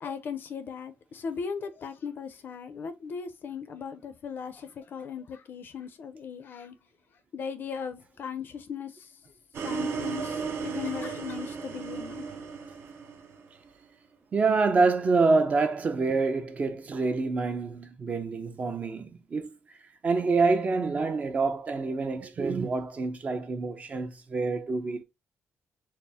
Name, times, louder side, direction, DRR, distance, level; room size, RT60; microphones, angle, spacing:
voice 1, 0.0-6.8 7.3-9.2 9.6-12.3, left 6 dB, 50° left, 0.5 m, -38 dB
sound 1, 9.5-13.7, right 5 dB, 60° right, 0.8 m, -35 dB
voice 2, 14.3-19.6 20.0-25.0, right 4 dB, 30° right, 0.5 m, -26 dB
4.2 x 2.0 x 3.4 m
cardioid pair, 155°, 5 cm